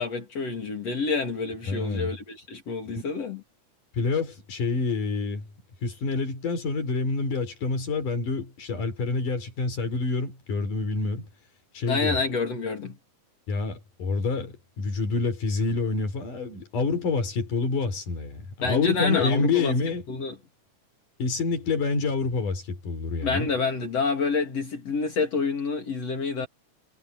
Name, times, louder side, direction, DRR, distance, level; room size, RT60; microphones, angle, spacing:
voice 1, 0.0-3.4 11.9-13.0 18.6-19.7 20.1-20.4 23.2-26.5, left 4 dB, 55° left, 3.8 m, -28 dB
voice 2, 1.7-2.1 2.8-3.0 4.0-5.5 5.8-11.3 11.7-12.2 13.5-20.0 21.2-23.5, left 4 dB, 90° left, 6.0 m, -27 dB
omnidirectional pair, 3.6 m